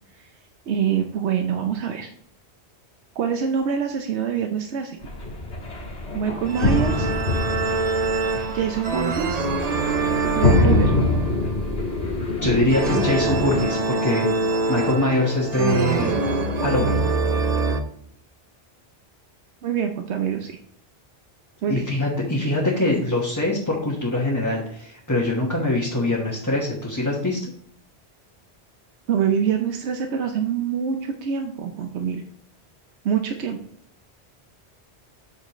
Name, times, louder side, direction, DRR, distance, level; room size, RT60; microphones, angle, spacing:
voice 1, 0.7-2.1 3.2-5.0 6.1-7.1 8.5-9.5 10.2-10.9 19.6-20.6 21.6-21.8 29.1-32.2 33.0-33.6, right 7 dB, 90° right, 5 dB, 1.0 m, -25 dB
sound 1, 5.0-13.6, left 2 dB, 85° left, 1.7 m, -24 dB
sound 2, 6.5-17.8, right 3 dB, 45° right, 0.7 m, -25 dB
voice 2, 12.4-14.3 14.7-16.1 16.6-17.0 21.7-27.4, left 2 dB, 15° left, -4 dB, 1.3 m, -23 dB
8.3 x 6.5 x 3.1 m, 0.63 s
omnidirectional pair, 1.1 m